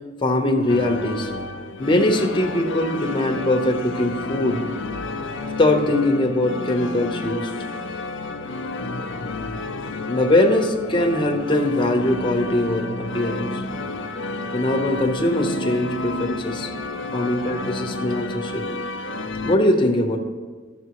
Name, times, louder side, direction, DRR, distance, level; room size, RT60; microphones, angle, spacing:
voice 1, 0.2-1.3 1.8-4.6 5.6-7.5 10.1-13.5 14.5-16.7 17.1-18.6 19.4-20.2, left 1 dB, 25° left, 2 dB, 0.8 m, -21 dB
sound 1, 0.7-19.6, left 3 dB, 65° left, 0.5 m, -31 dB
13.0 x 6.6 x 3.0 m, 1.4 s
head